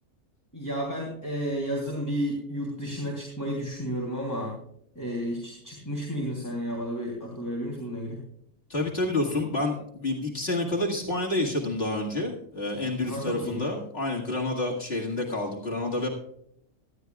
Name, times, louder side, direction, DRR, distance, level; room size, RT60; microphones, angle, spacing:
voice 1, 0.5-4.6 4.9-8.2 13.0-13.6, equal, 10° left, -2 dB, 3.0 m, -32 dB
voice 2, 8.7-16.1, left 2 dB, 45° left, -2 dB, 2.2 m, -29 dB
19.0 x 13.0 x 2.4 m, 0.70 s
omnidirectional pair, 1.5 m